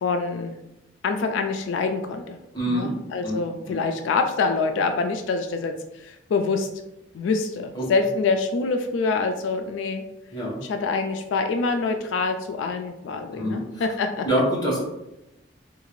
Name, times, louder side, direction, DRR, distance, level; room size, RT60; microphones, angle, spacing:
voice 1, 0.0-0.6 1.0-2.4 2.7-6.7 7.1-10.0 10.7-14.3, left 4 dB, 85° left, 6 dB, 0.3 m, -25 dB
voice 2, 2.5-2.9 3.2-3.4 3.7-3.8 7.7-7.9 10.3-10.6 13.4-13.8 14.2-14.8, equal, 20° left, -5 dB, 1.0 m, -25 dB
3.7 x 2.4 x 3.0 m, 0.90 s
head